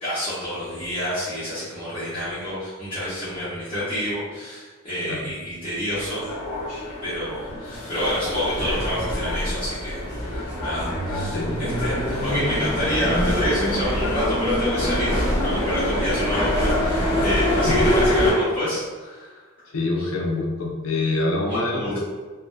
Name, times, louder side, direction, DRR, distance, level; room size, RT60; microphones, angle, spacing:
voice 1, 0.0-6.2 7.0-10.0 10.3-15.1 15.4-19.4 20.0-20.1 21.5-21.9, equal, 25° left, -15 dB, 0.8 m, -28 dB
sound 1, 5.9-18.3, left 1 dB, 85° left, 1.1 m, -24 dB
voice 2, 19.7-22.0, left 2 dB, 70° left, -1 dB, 0.5 m, -25 dB
3.0 x 2.0 x 2.2 m, 1.3 s
head